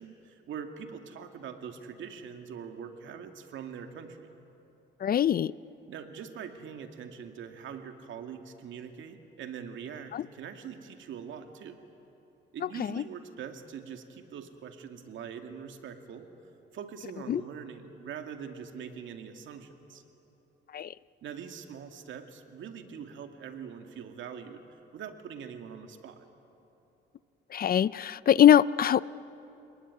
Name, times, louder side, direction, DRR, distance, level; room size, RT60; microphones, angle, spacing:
voice 1, 0.0-4.3 5.9-11.8 12.5-16.3 16.7-20.0 21.2-24.6 24.9-26.3, right 7 dB, 75° right, 5 dB, 2.3 m, -43 dB
voice 2, 5.0-5.5 10.1-10.2 12.8-13.0 17.3-17.4 20.7-20.9 27.5-29.0, left 10 dB, 50° left, 19 dB, 0.5 m, -22 dB
29.0 x 20.0 x 9.6 m, 2.9 s
cardioid pair, 90°, 20 cm